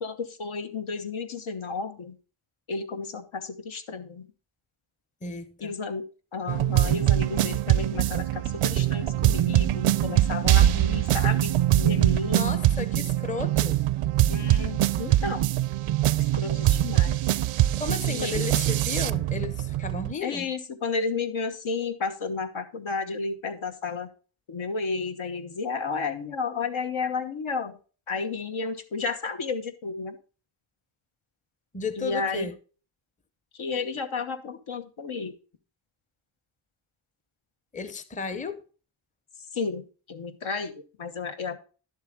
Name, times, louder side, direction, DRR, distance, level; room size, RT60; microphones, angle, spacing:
voice 1, 0.0-2.2 2.7-4.3 5.6-12.5 14.3-15.5 16.3-17.2 18.1-18.5 20.2-24.1 24.5-27.8 28.1-30.1 32.0-32.5 33.5-35.3 39.5-41.6, left 4 dB, 75° left, 1.2 m, -32 dB
voice 2, 5.2-5.7 12.3-13.8 17.8-20.5 31.7-32.5 37.7-38.6, left 4 dB, 15° left, 0.6 m, -34 dB
sound 1, 6.5-20.1, right 13 dB, 85° right, 0.5 m, -23 dB
11.0 x 7.2 x 3.6 m
wide cardioid pair, 100°, 49 cm